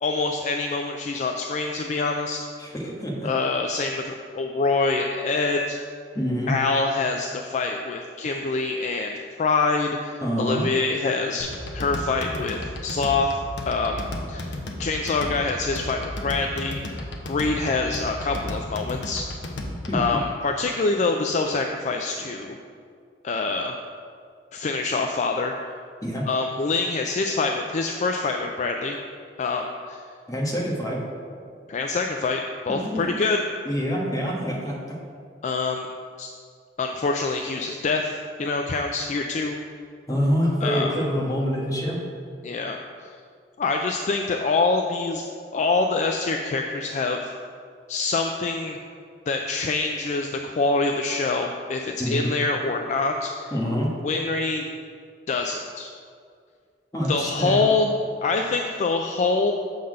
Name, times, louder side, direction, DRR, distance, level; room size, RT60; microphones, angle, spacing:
voice 1, 0.0-2.4 3.2-5.8 6.5-13.3 13.7-14.0 14.3-14.5 14.8-19.2 19.9-22.6 23.2-23.8 24.5-25.5 26.3-29.0 29.4-30.0 31.7-33.4 35.4-35.9 36.2-36.3 36.8-39.6 40.6-41.0 42.4-43.1 43.6-45.2 45.5-47.3 47.9-48.8 49.3-53.5 54.0-54.7 55.3-55.9 57.1-57.9 58.2-59.5, left 3 dB, 45° left, 3 dB, 0.4 m, -25 dB
voice 2, 2.6-3.3 6.1-6.5 10.2-10.6 19.9-20.2 26.0-26.3 30.3-31.0 32.7-33.1 33.6-34.8 40.1-42.0 51.9-52.2 53.5-53.9 56.9-57.6, equal, 20° left, -3 dB, 1.3 m, -26 dB
sound 1, 11.4-20.1, left 1 dB, 85° left, 0.9 m, -34 dB
7.0 x 3.9 x 6.3 m, 2.2 s
head